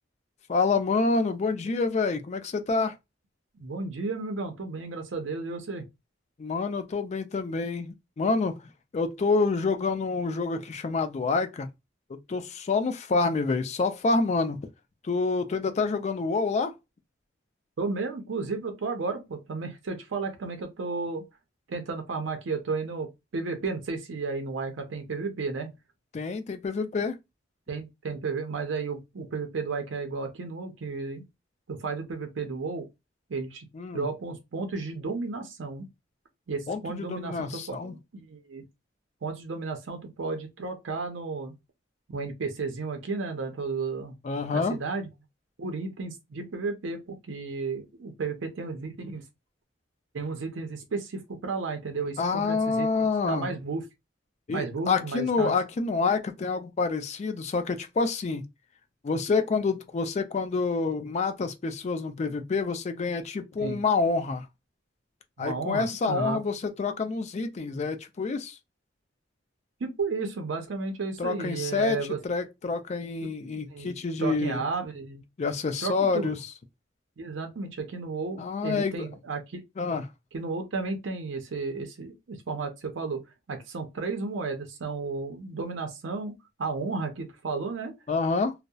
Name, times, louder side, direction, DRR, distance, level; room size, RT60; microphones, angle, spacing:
voice 1, 0.5-3.0 6.4-8.5 8.9-11.7 12.1-14.6 15.0-16.7 26.1-27.2 33.7-34.0 36.7-38.0 44.2-44.8 52.2-53.5 54.5-58.4 59.0-64.5 65.4-68.6 71.2-72.0 72.2-74.6 75.4-76.4 78.4-79.1 79.8-80.0 88.1-88.5, left 4 dB, 35° left, 0.3 m, -27 dB
voice 2, 3.6-5.9 17.8-21.2 21.7-25.7 27.7-31.2 31.7-32.9 33.3-33.7 33.9-35.9 36.5-38.6 39.2-41.5 42.1-44.2 44.5-45.1 45.6-49.2 50.1-53.8 54.5-55.5 63.6-63.8 65.4-66.4 69.8-72.2 73.2-73.3 73.7-75.2 75.8-76.3 77.2-79.6 80.3-83.2 83.5-87.9, right 4 dB, 85° right, 0.5 m, -33 dB
2.7 x 2.0 x 2.2 m
head